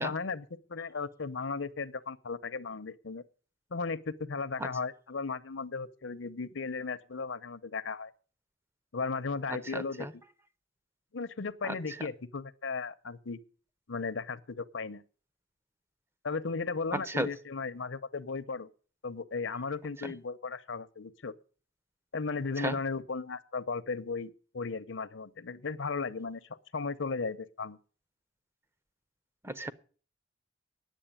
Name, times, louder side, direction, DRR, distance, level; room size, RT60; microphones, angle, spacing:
voice 1, 0.0-3.2 3.7-8.1 8.9-10.1 11.1-13.4 13.9-15.0 16.2-18.7 19.0-21.3 22.1-26.4 26.7-27.8, left 4 dB, 80° left, 0.8 m, -36 dB
voice 2, 9.7-10.1 11.6-11.8 16.9-17.3 20.0-20.1 22.6-22.8 29.4-29.7, right 1 dB, 15° right, 0.6 m, -33 dB
10.0 x 7.6 x 8.8 m
head